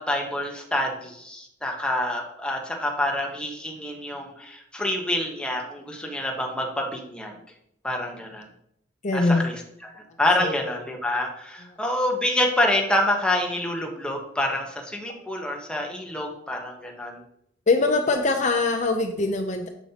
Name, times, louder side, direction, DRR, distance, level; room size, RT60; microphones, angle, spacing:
voice 1, 0.0-7.4 7.8-8.5 9.1-9.5 9.8-17.2, left 1 dB, 5° left, 1 dB, 1.0 m, -27 dB
voice 2, 9.0-9.5 10.4-10.7 17.7-19.7, left 3 dB, 45° left, 5 dB, 0.6 m, -22 dB
7.1 x 7.0 x 2.9 m, 0.73 s
head